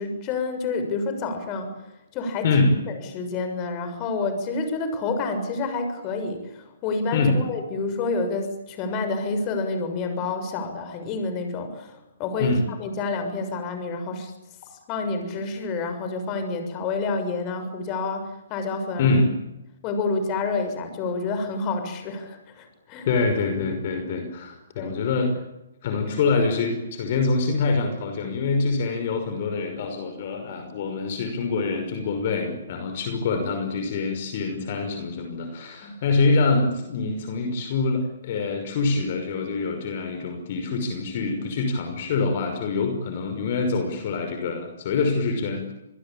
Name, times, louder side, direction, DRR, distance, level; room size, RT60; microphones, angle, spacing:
voice 1, 0.0-1.7 2.1-2.5 2.9-14.3 14.9-19.1 19.8-23.1 24.8-25.0 35.8-36.0, left 3 dB, 30° left, 7 dB, 6.7 m, -28 dB
voice 2, 23.0-25.4 25.8-45.7, left 3 dB, 45° left, 6 dB, 5.7 m, -25 dB
27.0 x 21.5 x 8.9 m, 0.95 s
hypercardioid pair, 140°, 0 cm